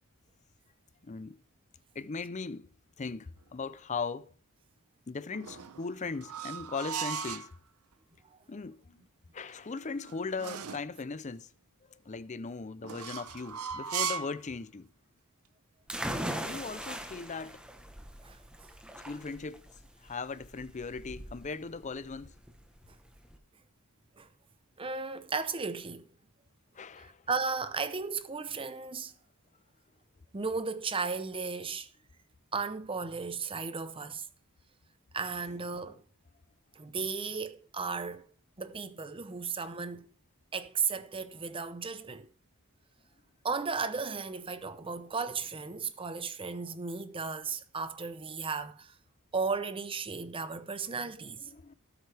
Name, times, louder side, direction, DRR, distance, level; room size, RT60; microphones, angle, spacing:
voice 1, 1.0-1.4 1.9-2.7 3.0-4.3 5.1-7.5 8.5-9.0 9.3-11.5 11.9-14.9 16.3-17.6 19.0-19.6 20.0-22.3 26.7-27.2 51.5-51.7, left 4 dB, 35° left, 0.5 m, -38 dB
sound 1, 5.3-7.5 9.5-10.9 12.8-14.4, right 7 dB, 80° right, 0.9 m, -37 dB
sound 2, 15.9-23.4, equal, 5° right, 1.0 m, -40 dB
voice 2, 24.8-26.1 27.0-29.1 30.3-31.9 32.5-34.3 35.1-36.0 36.8-38.2 38.6-40.1 40.5-42.3 43.4-48.9 49.3-51.5, right 4 dB, 25° right, 0.7 m, -35 dB
17.5 x 7.9 x 3.4 m
head